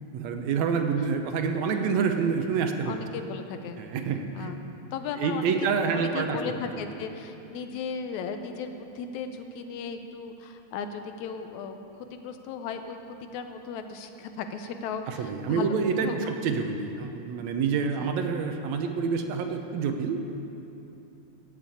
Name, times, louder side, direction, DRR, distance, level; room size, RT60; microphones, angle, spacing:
voice 1, 0.1-3.0 3.8-4.5 5.2-6.5 15.1-20.4, right 5 dB, 75° right, 5 dB, 2.1 m, -27 dB
voice 2, 2.9-3.8 4.4-16.5 18.0-18.1, left 5 dB, 80° left, 7 dB, 2.1 m, -36 dB
15.5 x 7.6 x 8.5 m, 2.8 s
omnidirectional pair, 3.3 m